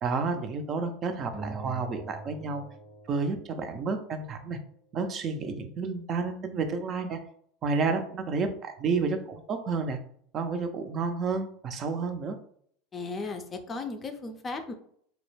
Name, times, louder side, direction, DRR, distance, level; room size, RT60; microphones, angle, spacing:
voice 1, 0.0-2.6 3.1-4.6 4.9-7.2 7.6-10.0 10.3-12.4, right 4 dB, 40° right, 7 dB, 0.4 m, -30 dB
sound 1, 1.3-3.9, right 3 dB, 10° right, 0.8 m, -42 dB
voice 2, 12.9-14.7, left 3 dB, 30° left, 6 dB, 0.4 m, -36 dB
2.2 x 2.0 x 3.1 m, 0.63 s
hypercardioid pair, 85°, 0 cm